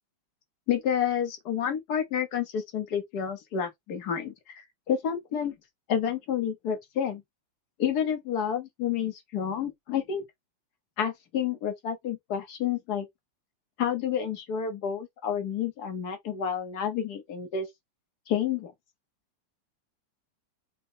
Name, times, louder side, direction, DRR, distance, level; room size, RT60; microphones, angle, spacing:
voice 1, 0.7-5.5 5.9-7.2 7.8-10.2 11.0-13.1 13.8-17.7 18.3-18.7, left 8 dB, 60° left, 1.4 m, -29 dB
5.2 x 2.2 x 3.7 m
omnidirectional pair, 2.1 m